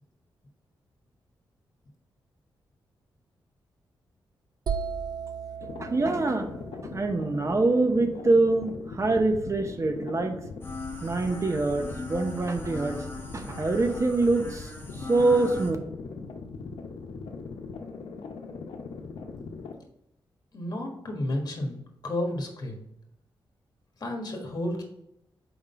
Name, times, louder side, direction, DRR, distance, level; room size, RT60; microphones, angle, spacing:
sound 1, 4.7-8.4, right 6 dB, 55° right, 0.4 m, -37 dB
sound 2, 5.6-19.7, left 4 dB, 85° left, 0.7 m, -40 dB
voice 1, 5.8-6.5 6.8-10.4 11.0-13.1 13.3-14.7 15.0-15.8, right 2 dB, 35° right, 6 dB, 0.8 m, -25 dB
sound 3, 10.6-15.7, left 3 dB, 25° left, 1.1 m, -39 dB
voice 2, 20.5-22.8 24.0-24.8, left 1 dB, 50° left, 1 dB, 1.5 m, -32 dB
4.7 x 3.8 x 5.5 m, 0.78 s
cardioid pair, 80°, 9 cm